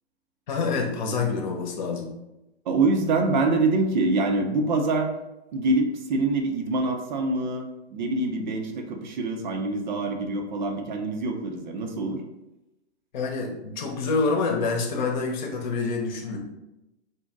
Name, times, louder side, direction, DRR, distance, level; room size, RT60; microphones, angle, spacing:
voice 1, 0.5-2.1 13.1-16.4, left 4 dB, 45° left, 2 dB, 0.9 m, -27 dB
voice 2, 2.7-5.1 5.5-12.2, right 2 dB, 45° right, 3 dB, 0.6 m, -25 dB
4.2 x 2.7 x 3.7 m, 0.94 s
figure-of-eight pair, 115°, 33 cm